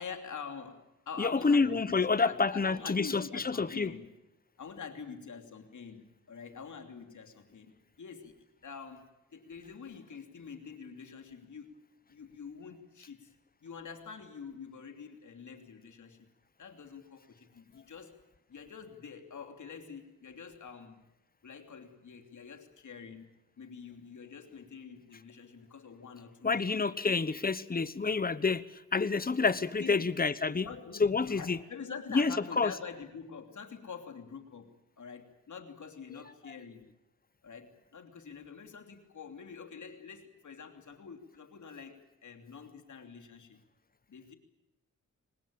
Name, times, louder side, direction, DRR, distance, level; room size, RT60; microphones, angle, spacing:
voice 1, 0.0-4.1 4.6-11.7 12.1-13.3 13.6-16.3 16.6-18.2 18.5-21.0 21.4-26.8 27.1-27.2 29.8-30.1 30.4-36.9 37.4-43.6 44.1-44.4, left 6 dB, 70° left, 5 dB, 3.1 m, -46 dB
voice 2, 1.2-3.9 26.4-30.7 31.0-31.6 32.1-32.7, left 4 dB, 30° left, 15 dB, 1.1 m, -28 dB
23.5 x 20.0 x 8.7 m, 0.97 s
cardioid pair, 65°, 31 cm